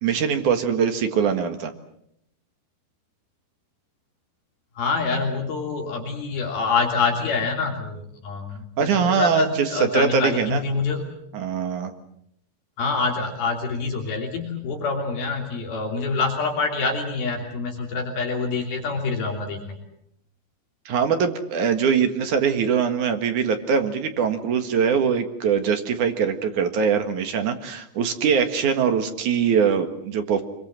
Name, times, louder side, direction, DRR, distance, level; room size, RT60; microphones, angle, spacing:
voice 1, 0.0-1.7 8.8-10.6 11.3-11.9 20.9-30.4, right 7 dB, 55° right, 7 dB, 2.4 m, -22 dB
voice 2, 4.8-11.1 12.8-19.8, left 4 dB, 55° left, 2 dB, 4.6 m, -26 dB
25.5 x 23.0 x 7.5 m, 0.73 s
omnidirectional pair, 5.3 m